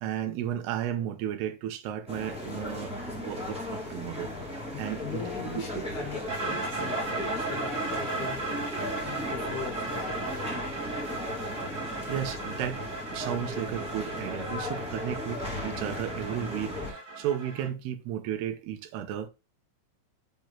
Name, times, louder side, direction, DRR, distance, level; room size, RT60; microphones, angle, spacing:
voice 1, 0.0-4.3 4.8-5.2 5.6-5.8 12.1-19.3, right 10 dB, 75° right, 2.5 m, -34 dB
sound 1, 2.1-16.9, left 1 dB, 5° right, 0.6 m, -36 dB
voice 2, 4.7-8.4 9.0-10.6 11.0-11.2, left 7 dB, 70° left, 2.7 m, -41 dB
sound 2, 6.3-17.7, right 3 dB, 35° right, 1.8 m, -36 dB
7.7 x 3.9 x 4.3 m
omnidirectional pair, 5.7 m